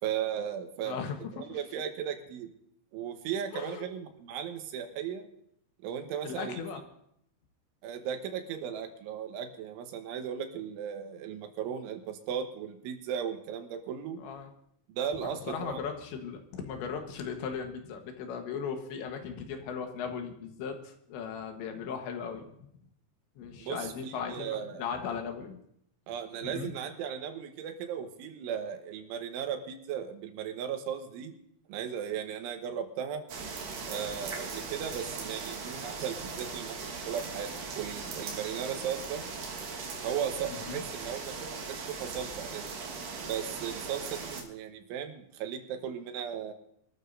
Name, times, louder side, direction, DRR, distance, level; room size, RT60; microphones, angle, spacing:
voice 1, 0.0-1.0 1.4-2.5 2.9-5.3 5.8-6.6 7.8-14.2 14.9-15.8 23.6-24.9 26.1-31.3 31.7-33.2 33.9-39.3 40.0-42.7 43.2-46.5, right 8 dB, 90° right, 6 dB, 3.7 m, -36 dB
voice 2, 0.8-1.6 3.5-3.9 6.2-6.8 14.2-14.5 15.2-22.4 23.4-25.6 26.4-26.7 40.5-40.8, left 6 dB, 75° left, 5 dB, 3.5 m, -37 dB
sound 1, 33.3-44.4, right 4 dB, 60° right, 2.8 m, -39 dB
26.0 x 13.0 x 2.7 m, 0.71 s
omnidirectional pair, 5.3 m